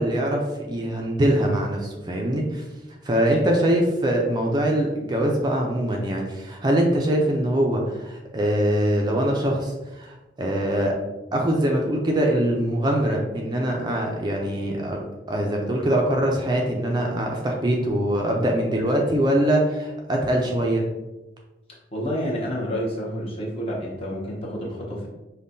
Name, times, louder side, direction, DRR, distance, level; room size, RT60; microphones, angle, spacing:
voice 1, 0.0-2.6 3.0-10.9 11.3-15.0 15.3-20.8, right 1 dB, 25° right, 0 dB, 0.4 m, -23 dB
voice 2, 21.9-25.1, equal, 30° left, -4 dB, 0.9 m, -29 dB
5.3 x 2.2 x 2.6 m, 1.1 s
head